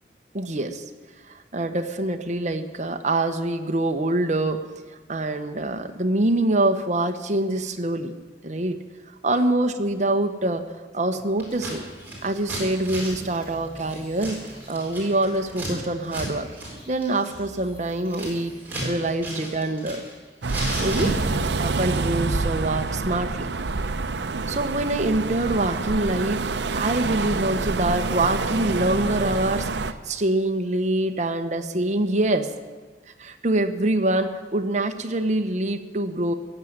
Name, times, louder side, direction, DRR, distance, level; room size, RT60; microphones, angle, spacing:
voice 1, 0.3-0.8 1.5-4.6 5.1-8.2 8.4-8.8 9.2-10.6 10.9-11.8 12.2-14.4 14.7-16.5 16.9-18.5 18.8-20.0 20.8-21.1 21.6-23.5 24.5-32.5 33.2-36.3, right 2 dB, 45° right, 6 dB, 1.0 m, -25 dB
Scissors, 11.4-11.8 12.0-15.7 16.0-16.3 16.5-16.7 17.0-18.9 19.2-20.1 20.4-21.6, right 1 dB, 10° right, 4.6 m, -32 dB
sound 1, 11.5-19.1, right 1 dB, 30° left, 6.6 m, -48 dB
sound 2, 20.4-29.9, right 3 dB, 80° right, 0.7 m, -27 dB
15.5 x 7.9 x 9.5 m, 1.4 s
head